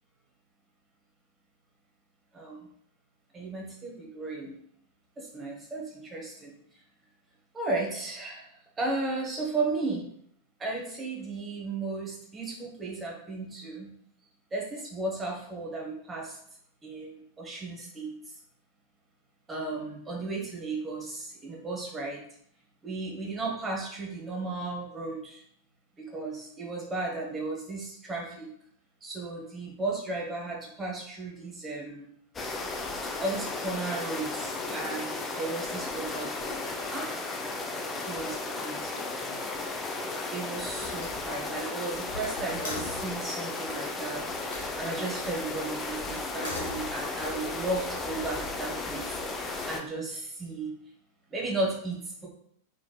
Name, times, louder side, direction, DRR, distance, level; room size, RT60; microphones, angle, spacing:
voice 1, 2.3-2.7 3.3-4.6 5.2-6.5 7.5-8.5 8.8-10.0 10.6-13.9 14.5-16.4 16.8-18.3 19.5-22.2 22.8-25.4 26.0-28.5 29.0-32.1 33.2-36.6 36.9-37.2 38.0-39.4 40.3-50.7 51.3-52.3, right 2 dB, 15° right, -2 dB, 1.0 m, -35 dB
sound 1, 32.3-49.8, left 3 dB, 20° left, 0.4 m, -35 dB
Slam, 39.9-40.3 40.7-43.2 44.3-44.7 46.2-47.4, left 2 dB, 65° left, 1.1 m, -41 dB
3.7 x 3.4 x 2.2 m, 0.68 s
figure-of-eight pair, 90°, 0 cm